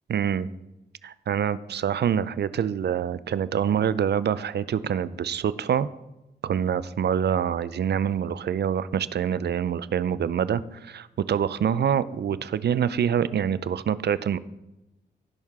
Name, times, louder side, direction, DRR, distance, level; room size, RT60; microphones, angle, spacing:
voice 1, 0.1-0.5 1.0-5.9 6.4-14.4, right 8 dB, 70° right, 16 dB, 0.5 m, -26 dB
16.0 x 6.4 x 3.6 m, 0.98 s
cardioid pair, 65°, 18 cm